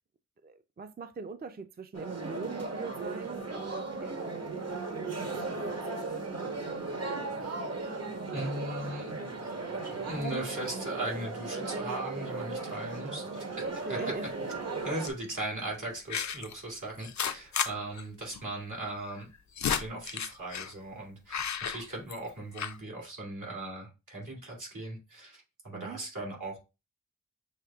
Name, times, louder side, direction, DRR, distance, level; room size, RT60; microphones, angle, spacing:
voice 1, 0.4-6.3 13.0-14.3 25.7-26.0, right 4 dB, 30° right, 0.4 m, -42 dB
sound 1, 1.9-15.1, right 3 dB, 55° right, 1.0 m, -36 dB
voice 2, 8.3-9.1 10.0-13.4 13.7-14.0 14.8-19.3 19.6-26.6, right 2 dB, 85° right, 2.2 m, -38 dB
sound 2, 13.9-14.3 15.1-15.3 16.1-16.5 17.0-17.7 18.0-18.1 18.3-18.4 19.2-20.7 21.3-22.3 22.6-22.8, left 8 dB, 70° left, 0.4 m, -33 dB
6.5 x 2.9 x 2.3 m
wide cardioid pair, 50°, 30 cm